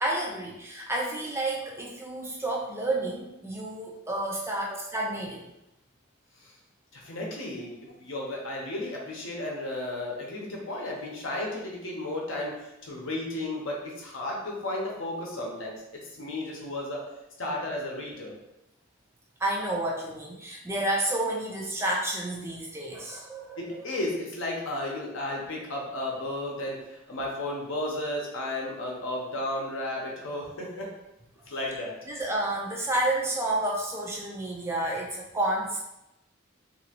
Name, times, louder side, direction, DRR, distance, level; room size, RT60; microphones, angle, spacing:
voice 1, 0.0-5.5 19.4-23.9 32.1-35.8, right 1 dB, 15° right, -2 dB, 0.4 m, -30 dB
voice 2, 6.9-15.8 16.1-17.0 17.4-18.3 23.6-30.9 31.5-31.9, left 1 dB, 70° left, -2 dB, 0.8 m, -33 dB
3.0 x 2.6 x 2.8 m, 0.89 s
head